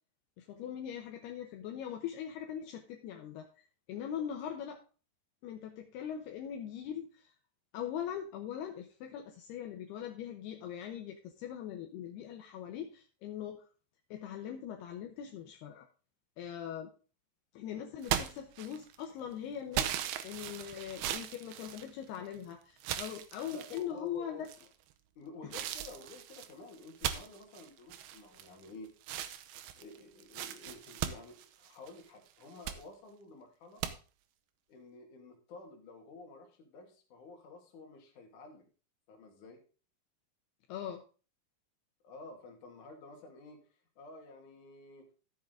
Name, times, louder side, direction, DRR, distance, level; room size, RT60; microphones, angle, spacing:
voice 1, 0.4-4.8 5.4-7.4 7.7-13.6 14.1-15.9 16.4-16.9 17.5-24.5 25.4-25.5 40.7-41.0, left 9 dB, 75° left, 2 dB, 2.5 m, -41 dB
sound 1, 18.0-19.0 19.7-22.4 22.8-23.8 24.4-24.9 25.5-28.7 29.0-32.0 32.4-32.8 33.8-33.9, right 11 dB, 85° right, 2.2 m, -38 dB
voice 2, 23.5-24.5 25.2-28.9 29.7-33.8 34.7-38.7 39.1-39.6 42.0-45.1, left 3 dB, 50° left, 2 dB, 2.9 m, -51 dB
13.0 x 7.5 x 3.8 m, 0.36 s
omnidirectional pair, 5.6 m